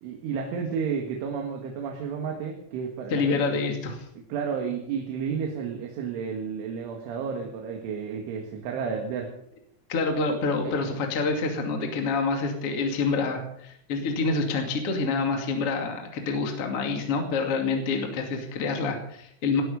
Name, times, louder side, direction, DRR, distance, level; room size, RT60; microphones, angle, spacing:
voice 1, 0.0-3.6 4.3-9.3 10.6-10.7, right 6 dB, 90° right, 2 dB, 4.3 m, -32 dB
voice 2, 3.1-4.0 9.9-19.6, left 4 dB, 40° left, 3 dB, 2.6 m, -27 dB
19.5 x 13.5 x 5.3 m, 0.70 s
omnidirectional pair, 5.4 m